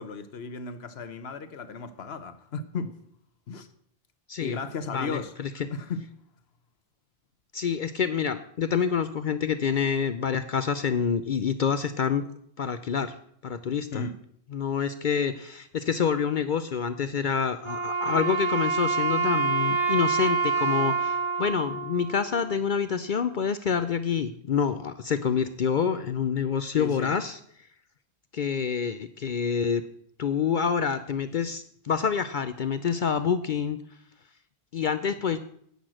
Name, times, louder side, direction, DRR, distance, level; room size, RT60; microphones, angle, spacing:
voice 1, 0.0-3.0 3.5-3.7 4.4-5.3 5.7-6.0 13.9-14.1 26.8-27.1, left 4 dB, 75° left, 1.1 m, -35 dB
voice 2, 4.9-5.7 7.5-12.2 12.6-13.1 13.4-14.1 14.5-27.4 28.3-29.8 30.2-33.8 34.7-35.4, left 6 dB, 55° left, 0.7 m, -27 dB
Wind instrument woodwind instrument, 17.6-22.8, right 5 dB, 30° right, 1.1 m, -27 dB
10.5 x 8.4 x 6.2 m
omnidirectional pair, 1.1 m